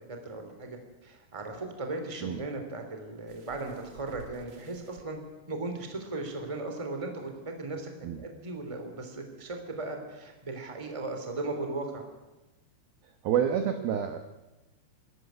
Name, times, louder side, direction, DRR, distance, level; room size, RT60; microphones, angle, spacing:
voice 1, 0.1-5.2 5.5-7.9 8.2-12.0, right 2 dB, 10° right, 4 dB, 2.2 m, -37 dB
sound 1, 3.3-5.0 6.0-6.1 6.5-6.6, right 5 dB, 55° right, 1.8 m, -51 dB
voice 2, 13.2-14.2, right 9 dB, 70° right, 7 dB, 2.4 m, -28 dB
25.0 x 13.5 x 9.6 m, 1.0 s
omnidirectional pair, 5.7 m